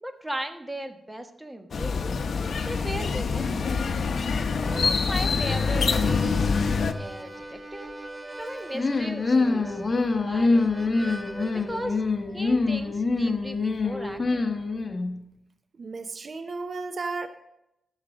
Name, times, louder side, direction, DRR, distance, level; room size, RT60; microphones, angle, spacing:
voice 1, 0.0-2.0 2.7-3.8 4.7-6.5 7.0-7.9 8.4-9.8 10.2-10.5 11.5-12.0 12.3-14.5, right 1 dB, 10° right, 6 dB, 1.3 m, -37 dB
sound 1, 1.7-6.9, left 5 dB, 70° left, 0.8 m, -25 dB
Harmonica, 4.5-11.9, right 1 dB, 30° right, 1.5 m, -41 dB
sound 2, 8.7-15.2, left 3 dB, 40° left, 1.2 m, -25 dB
voice 2, 15.8-17.3, right 3 dB, 55° right, 9 dB, 0.7 m, -33 dB
14.0 x 7.1 x 5.0 m, 0.85 s
cardioid pair, 75°, 0 cm